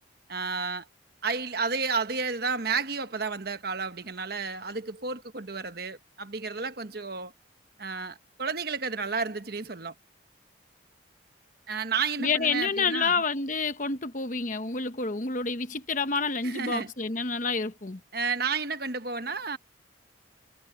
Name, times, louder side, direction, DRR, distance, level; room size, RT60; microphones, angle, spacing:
voice 1, 0.3-0.9 1.2-7.3 7.8-9.9 11.7-13.2 16.4-16.9 18.1-19.6, right 5 dB, 50° right, 1.2 m, -31 dB
voice 2, 12.2-18.0, left 4 dB, 40° left, 1.0 m, -28 dB
head